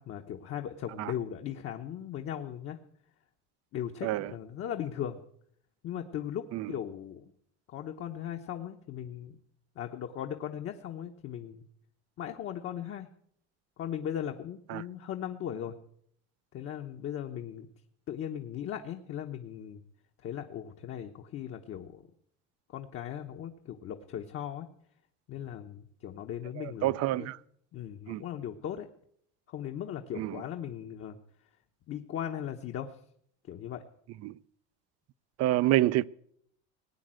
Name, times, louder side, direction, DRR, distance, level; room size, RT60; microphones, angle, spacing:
voice 1, 0.0-2.8 3.7-5.2 5.8-7.3 7.7-9.4 9.8-11.6 12.2-13.1 13.8-15.7 16.5-17.7 18.1-19.8 20.2-22.1 22.7-24.7 25.3-27.3 27.7-28.9 29.5-31.2 31.9-33.0 33.5-33.8, left 10 dB, 45° left, 1.1 m, -38 dB
voice 2, 26.6-27.4 28.1-28.2 30.2-30.4 34.2-34.3 35.4-36.0, right 15 dB, 55° right, 0.5 m, -28 dB
19.0 x 9.3 x 7.6 m
cardioid pair, 135°, 31 cm